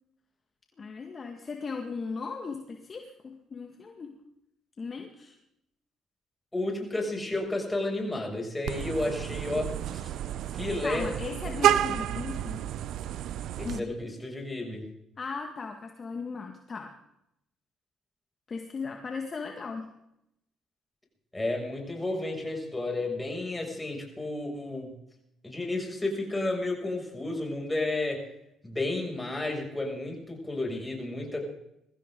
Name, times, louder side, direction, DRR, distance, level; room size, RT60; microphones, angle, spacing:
voice 1, 0.8-4.2 4.8-5.4 10.8-12.7 13.6-14.0 15.2-17.0 18.5-19.9, left 4 dB, 40° left, 3 dB, 2.0 m, -37 dB
voice 2, 6.5-10.1 10.5-11.1 13.6-14.9 21.3-24.9 25.4-28.2 28.6-31.4, left 2 dB, 15° left, 1 dB, 6.9 m, -32 dB
Vehicle horn car horn honking, 8.7-13.8, right 11 dB, 70° right, 0.7 m, -30 dB
23.0 x 15.0 x 3.9 m, 0.81 s
supercardioid pair, 65°, 0 cm